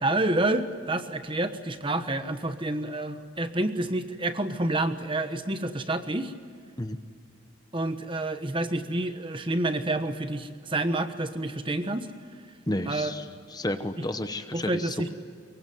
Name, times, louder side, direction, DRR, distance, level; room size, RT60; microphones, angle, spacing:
voice 1, 0.0-6.3 7.7-12.1 12.9-13.1 14.5-15.1, right 2 dB, 25° right, 9 dB, 1.3 m, -28 dB
voice 2, 12.7-15.0, left 1 dB, 20° left, 9 dB, 1.0 m, -32 dB
24.5 x 23.0 x 9.3 m, 2.1 s
head